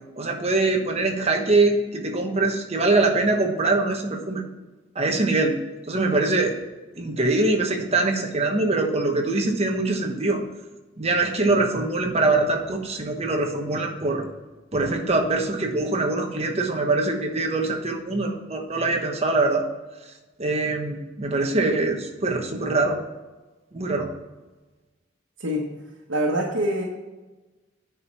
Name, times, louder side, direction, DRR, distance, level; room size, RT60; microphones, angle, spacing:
voice 1, 0.2-4.4 4.9-5.6 5.9-6.6 6.9-10.4 11.0-14.2 14.7-19.7 20.4-23.0 23.7-24.1, right 2 dB, 35° right, 2 dB, 1.1 m, -23 dB
voice 2, 26.1-26.8, right 1 dB, 85° right, -3 dB, 1.3 m, -24 dB
9.4 x 4.7 x 5.5 m, 1.2 s
head